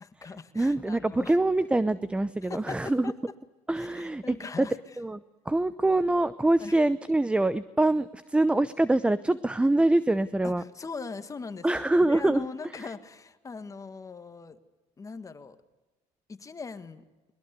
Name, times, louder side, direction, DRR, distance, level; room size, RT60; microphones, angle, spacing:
voice 1, 0.0-1.4 2.4-3.1 3.7-5.0 6.6-6.8 10.4-14.6 15.0-15.6 16.3-17.0, left 4 dB, 25° left, 10 dB, 1.6 m, -40 dB
voice 2, 0.6-3.1 3.7-4.2 4.6-4.7 5.0-5.2 5.5-10.6 11.6-12.5, right 2 dB, 10° right, 16 dB, 0.7 m, -24 dB
22.0 x 21.5 x 8.2 m, 1.1 s
cardioid pair, 110°, 14 cm